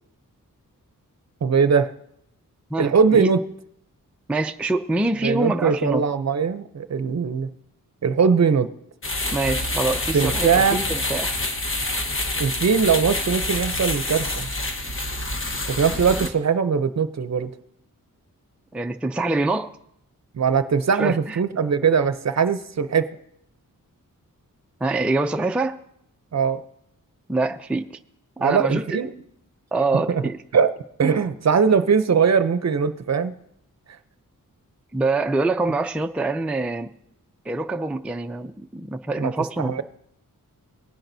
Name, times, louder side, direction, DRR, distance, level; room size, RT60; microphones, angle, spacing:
voice 1, 1.4-1.9 2.8-3.4 5.2-7.5 8.0-8.7 10.1-10.8 12.4-14.5 15.7-17.5 20.3-23.1 26.3-26.6 28.4-29.1 29.9-30.2 30.5-30.7 31.0-33.3 39.2-39.3 39.6-39.8, right 6 dB, 50° right, 11 dB, 0.6 m, -20 dB
voice 2, 2.7-3.3 4.3-6.0 9.3-11.4 16.2-16.3 18.7-19.8 21.0-21.4 24.8-25.8 27.3-27.8 28.4-29.0 29.7-30.4 34.9-36.9 37.5-39.8, right 2 dB, 5° right, 6 dB, 0.4 m, -25 dB
sound 1, 9.0-16.3, left 1 dB, 40° left, 1.1 m, -27 dB
18.5 x 10.0 x 2.7 m, 0.73 s
wide cardioid pair, 110°, 34 cm